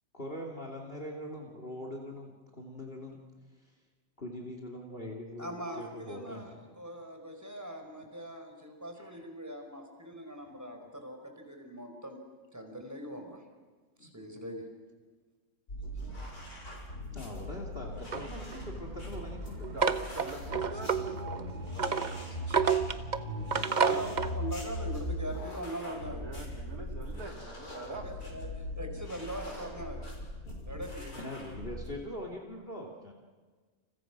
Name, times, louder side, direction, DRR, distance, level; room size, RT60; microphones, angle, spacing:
voice 1, 0.1-3.2 4.2-5.5 5.8-6.6 9.0-9.1 14.0-14.1 17.1-19.7 26.3-26.6 30.5-30.6 31.2-33.1, left 1 dB, 40° left, 1 dB, 3.1 m, -42 dB
voice 2, 5.4-12.2 12.5-13.4 14.0-14.6 22.5-22.6 23.7-26.2 27.8-30.1 30.7-31.3, equal, 10° right, 4 dB, 5.0 m, -41 dB
sound 1, 15.7-31.9, left 1 dB, 90° left, 7.1 m, -40 dB
sound 2, 18.1-24.4, right 6 dB, 35° right, 1.0 m, -31 dB
voice 3, 19.7-22.5 25.8-28.0, right 2 dB, 80° right, 3 dB, 3.8 m, -45 dB
30.0 x 29.5 x 6.1 m, 1.4 s
omnidirectional pair, 1.6 m